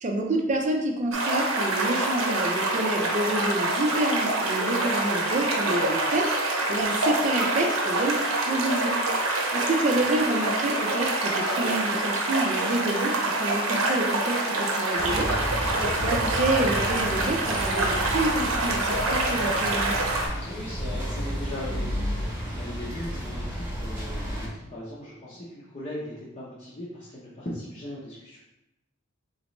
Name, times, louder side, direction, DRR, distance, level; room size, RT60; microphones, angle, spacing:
voice 1, 0.0-8.2 8.5-9.0 9.3-19.9, right 1 dB, 35° right, 2 dB, 0.5 m, -28 dB
sound 1, 1.1-20.3, right 2 dB, 80° right, 0.7 m, -26 dB
sound 2, 15.0-24.5, equal, 10° right, 1.0 m, -32 dB
voice 2, 20.4-28.4, left 1 dB, 35° left, -8 dB, 0.7 m, -39 dB
4.0 x 3.0 x 3.1 m, 0.92 s
head